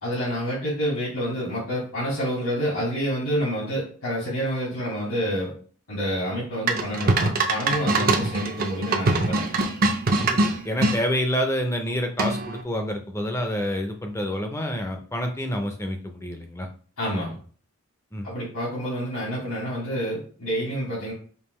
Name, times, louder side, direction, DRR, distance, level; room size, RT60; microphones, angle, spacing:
voice 1, 0.0-5.5 5.9-9.6 17.0-17.4 18.2-21.1, equal, 80° left, -9 dB, 2.2 m, -28 dB
sound 1, 6.7-11.0 12.2-12.6, right 2 dB, 40° right, 0.5 m, -23 dB
voice 2, 10.3-16.7 18.1-18.3, equal, 10° left, 4 dB, 0.5 m, -28 dB
5.3 x 2.5 x 3.1 m, 0.43 s
head